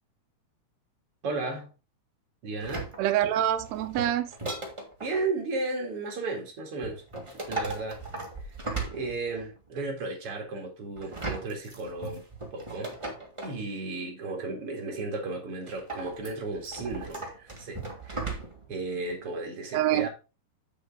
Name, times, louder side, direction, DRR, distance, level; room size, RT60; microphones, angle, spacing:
voice 1, 1.2-1.7 2.4-2.9 5.0-7.0 7.5-8.0 8.9-12.2 12.5-12.9 13.4-18.3 18.7-20.1, right 3 dB, 50° right, 2.8 m, -34 dB
sound 1, 2.6-5.2 6.8-9.6 11.0-13.6 15.7-18.7 19.1-19.2, right 3 dB, 20° right, 0.9 m, -37 dB
voice 2, 3.0-4.3 19.7-20.1, right 12 dB, 80° right, 1.7 m, -25 dB
7.3 x 6.6 x 3.7 m
omnidirectional pair, 3.5 m